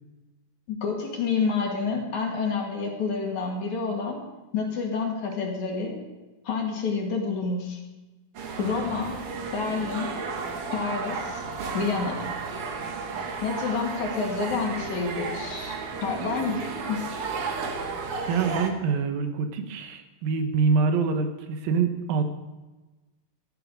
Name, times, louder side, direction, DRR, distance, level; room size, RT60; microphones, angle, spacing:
voice 1, 0.7-4.2 4.5-6.0 6.4-7.8 8.6-9.2 9.5-10.1 10.7-11.4 11.7-12.2 13.4-17.0, left 4 dB, 60° left, 0 dB, 3.2 m, -28 dB
sound 1, 8.3-18.7, right 4 dB, 60° right, 1.6 m, -33 dB
voice 2, 18.3-22.2, right 5 dB, 80° right, 6 dB, 2.8 m, -25 dB
13.5 x 11.0 x 5.1 m, 1.1 s
omnidirectional pair, 4.1 m